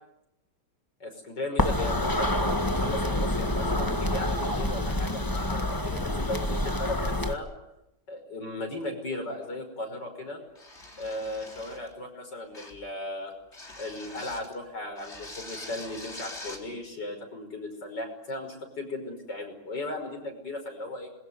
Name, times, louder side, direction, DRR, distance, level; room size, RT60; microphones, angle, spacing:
voice 1, 1.0-7.5 8.1-10.4 11.0-13.3 13.8-21.1, left 2 dB, 75° left, 3 dB, 6.3 m, -36 dB
sound 1, 1.6-7.3, left 1 dB, 10° left, 1.7 m, -27 dB
sound 2, 10.6-11.9 12.5-12.9 13.5-14.5 15.0-16.7, left 2 dB, 35° left, 4.2 m, -44 dB
27.0 x 22.0 x 9.7 m, 0.89 s
omnidirectional pair, 1.9 m